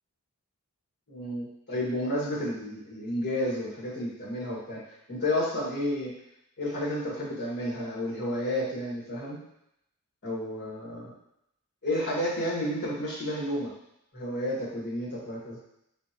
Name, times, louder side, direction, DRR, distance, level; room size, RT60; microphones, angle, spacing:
voice 1, 1.1-4.8 5.1-6.1 6.6-9.4 10.2-11.1 11.8-13.7 14.1-15.6, left 1 dB, 50° left, -6 dB, 1.8 m, -31 dB
4.3 x 4.0 x 3.0 m, 0.78 s
head